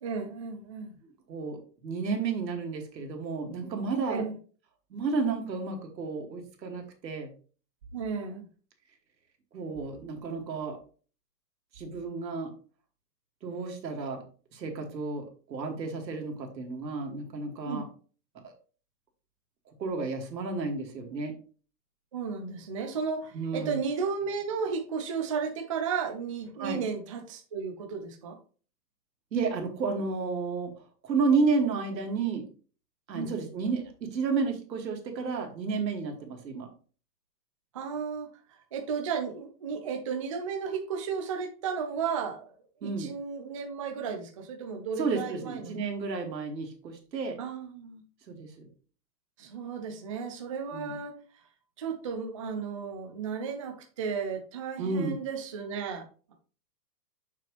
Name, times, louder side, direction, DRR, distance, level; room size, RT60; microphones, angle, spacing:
voice 1, 0.0-0.9 4.1-4.3 7.9-8.4 17.6-17.8 22.1-28.4 33.1-33.3 37.7-42.5 42.8-45.8 47.4-48.0 49.4-51.1 51.8-56.0, right 6 dB, 20° right, 4 dB, 0.4 m, -34 dB
voice 2, 1.3-4.3 4.9-7.3 9.5-10.8 11.7-12.5 13.4-14.2 14.5-17.8 18.3-18.4 19.8-21.3 23.3-23.8 26.6-26.8 29.3-30.7 31.0-32.5 33.1-36.7 42.8-43.1 45.0-47.4 48.3-48.7 50.7-51.0 54.8-55.2, right 4 dB, 85° right, 3 dB, 2.5 m, -31 dB
6.8 x 6.1 x 3.3 m, 0.39 s
hypercardioid pair, 155°, 50 cm